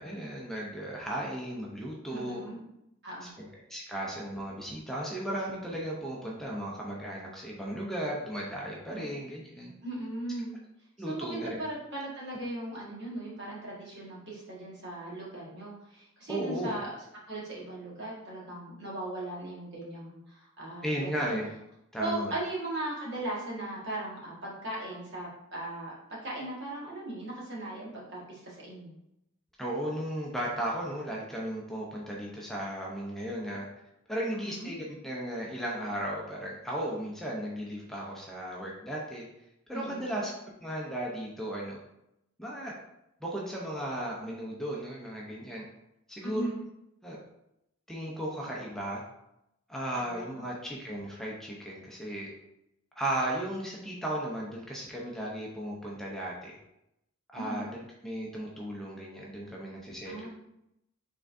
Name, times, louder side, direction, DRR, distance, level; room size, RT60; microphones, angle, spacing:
voice 1, 0.0-2.4 3.4-9.7 11.0-11.6 16.3-16.7 20.8-21.5 21.9-22.3 29.6-33.7 34.1-39.3 39.7-40.3 40.6-41.8 42.4-42.7 43.2-45.6 46.1-46.5 47.0-47.2 47.9-49.0 49.7-52.3 53.0-56.6 57.3-57.7 58.0-60.3, right 1 dB, ahead, -4 dB, 0.6 m, -35 dB
voice 2, 2.1-2.6 3.0-3.3 8.9-9.0 9.8-10.5 11.1-16.9 17.3-21.4 22.0-28.9 34.3-34.7 39.7-40.2 46.2-46.6 49.9-50.4 57.4-57.7 60.0-60.3, right 1 dB, 55° right, -5 dB, 1.6 m, -38 dB
5.6 x 3.6 x 2.6 m, 0.83 s
head